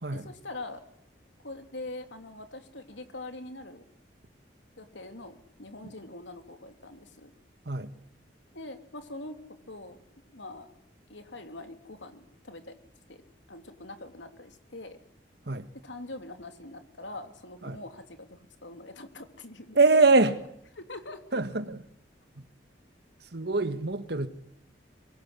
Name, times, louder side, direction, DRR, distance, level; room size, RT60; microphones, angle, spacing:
voice 1, 0.1-0.8 1.4-3.8 4.8-7.3 8.5-9.4 9.7-10.0 10.3-10.7 11.1-12.8 13.1-13.2 13.5-15.0 15.8-19.8 20.1-20.3 20.7-21.4, left 2 dB, 90° left, 3.2 m, -43 dB
voice 2, 19.8-20.4 21.3-21.8 23.3-24.3, right 3 dB, 65° right, 1.8 m, -23 dB
24.0 x 23.5 x 9.9 m
head